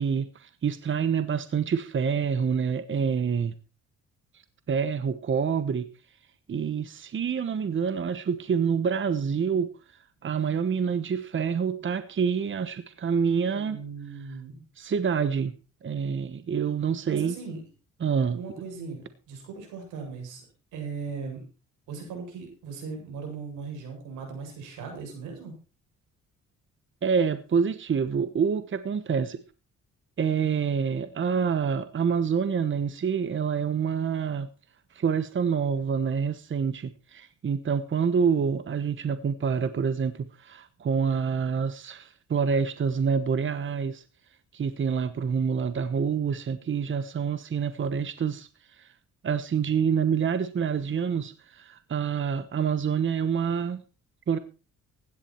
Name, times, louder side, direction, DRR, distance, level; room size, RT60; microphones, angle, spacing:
voice 1, 0.0-3.5 4.7-5.9 6.5-9.7 10.2-13.8 14.8-15.5 15.8-17.3 18.0-18.4 27.0-29.4 30.2-34.5 34.9-44.0 44.5-48.9 49.2-53.8 54.3-54.4, right 6 dB, 40° right, 13 dB, 1.1 m, -27 dB
voice 2, 13.5-14.6 17.1-17.6 18.3-20.5 20.7-21.4 21.9-25.5, right 5 dB, 90° right, 3 dB, 8.0 m, -38 dB
16.0 x 11.0 x 4.5 m, 0.33 s
cardioid pair, 90°, 30 cm